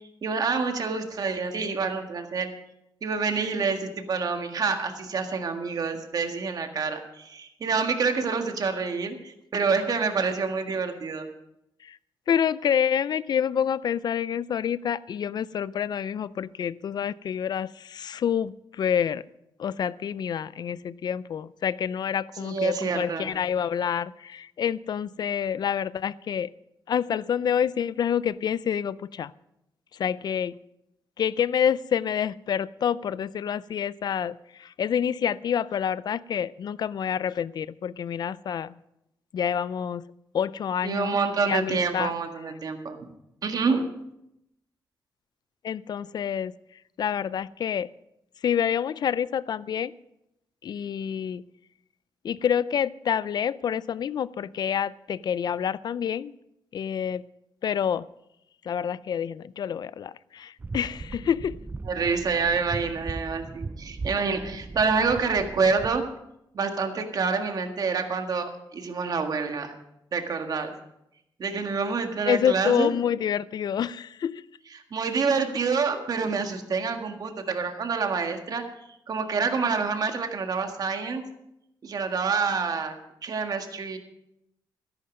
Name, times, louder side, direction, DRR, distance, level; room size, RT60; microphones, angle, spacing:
voice 1, 0.2-2.5 3.0-11.3 22.4-23.3 40.8-43.1 43.4-43.8 61.8-66.0 66.5-69.7 70.1-70.7 71.4-72.9 74.9-78.6 79.1-81.2 81.8-83.0 83.2-84.0, right 5 dB, 50° right, 5 dB, 1.7 m, -27 dB
voice 2, 12.3-19.2 19.6-26.5 26.9-29.3 29.9-30.6 31.2-38.8 39.3-40.0 40.3-41.2 41.5-42.1 45.6-46.5 47.0-47.9 48.4-49.9 50.6-51.4 52.2-56.3 56.7-57.2 57.6-58.1 58.6-61.6 72.3-74.4, left 8 dB, 60° left, 19 dB, 0.4 m, -27 dB
sound 1, 60.6-66.0, right 3 dB, 20° right, 0.5 m, -38 dB
13.5 x 11.0 x 5.3 m, 0.83 s
cardioid pair, 120°, 8 cm